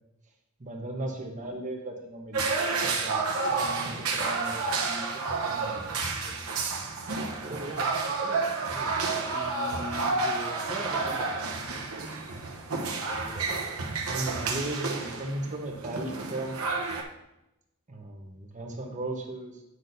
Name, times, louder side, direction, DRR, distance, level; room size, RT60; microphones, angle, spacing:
voice 1, 0.6-6.3 9.8-9.9 14.1-16.6 17.9-19.6, right 1 dB, 35° right, 2 dB, 1.0 m, -37 dB
sound 1, 2.3-17.0, right 4 dB, 80° right, 0.9 m, -30 dB
voice 2, 7.4-8.9 9.3-11.4 13.1-13.6, right 1 dB, 15° right, -5 dB, 0.7 m, -41 dB
9.6 x 6.1 x 2.6 m, 0.91 s
head